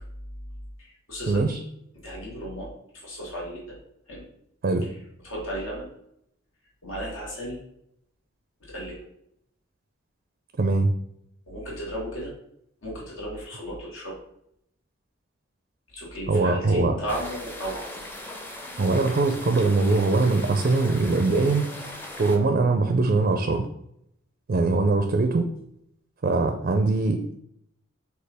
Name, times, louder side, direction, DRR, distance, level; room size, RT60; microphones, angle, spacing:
voice 1, 0.8-1.6 2.0-3.8 4.1-4.2 4.8-5.9 6.8-7.6 8.7-9.0 11.5-12.3 12.8-14.2 15.9-17.9, equal, 80° left, -4 dB, 1.4 m, -35 dB
voice 2, 10.6-10.9 16.3-17.0 18.8-21.9 22.2-23.7 24.5-25.5 26.2-27.4, right 3 dB, 45° right, 5 dB, 0.4 m, -22 dB
sound 1, 17.1-22.4, left 1 dB, 10° left, 0.5 m, -39 dB
6.4 x 2.4 x 3.4 m, 0.75 s
head